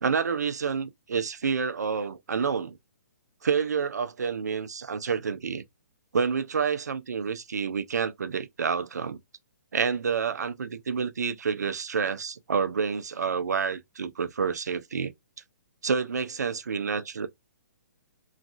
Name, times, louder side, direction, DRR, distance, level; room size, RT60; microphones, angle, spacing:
voice 1, 0.0-2.8 3.4-5.6 6.1-9.2 9.7-15.1 15.8-17.3, right 6 dB, 80° right, 0.5 m, -28 dB
3.2 x 2.4 x 2.4 m
hypercardioid pair, 140°, 9 cm